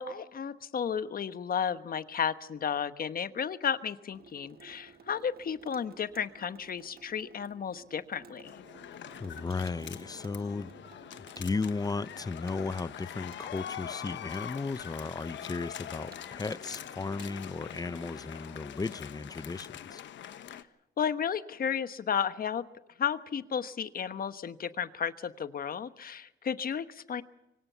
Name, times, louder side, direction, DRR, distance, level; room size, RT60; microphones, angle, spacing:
voice 1, 0.0-8.5 20.5-20.6 21.0-22.6 23.0-27.2, left 7 dB, 45° left, 12 dB, 1.2 m, -33 dB
Water tap faucet / Sink (filling or washing), 4.1-18.4, right 5 dB, 50° right, 1.7 m, -56 dB
sound 1, 8.4-20.6, left 10 dB, 70° left, 1.1 m, -44 dB
voice 2, 9.2-10.7 11.2-20.0, left 4 dB, 20° left, 17 dB, 0.7 m, -35 dB
24.5 x 17.5 x 7.0 m, 0.95 s
cardioid pair, 90°, 20 cm